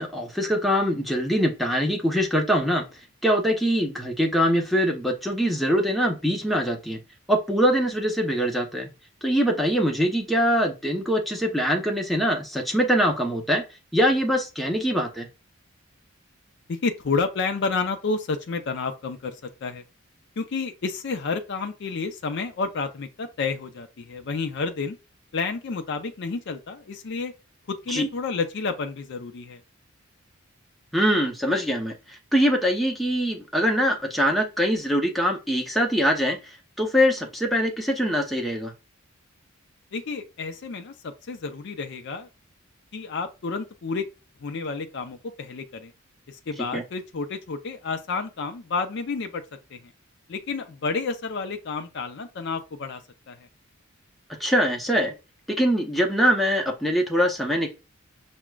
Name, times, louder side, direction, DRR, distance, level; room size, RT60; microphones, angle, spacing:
voice 1, 0.0-2.9 3.2-7.0 7.3-8.9 9.2-13.6 13.9-15.3 27.9-28.1 30.9-36.4 36.8-38.7 46.7-46.8 54.4-55.1 55.5-57.7, equal, ahead, 0.6 m, -23 dB
voice 2, 16.7-19.8 20.4-25.0 25.3-27.3 27.7-29.6 39.9-42.3 42.9-44.1 44.4-45.9 46.3-49.4 49.7-49.9 50.3-53.0 53.3-53.5, left 4 dB, 55° left, 0.4 m, -30 dB
5.9 x 2.1 x 2.3 m
head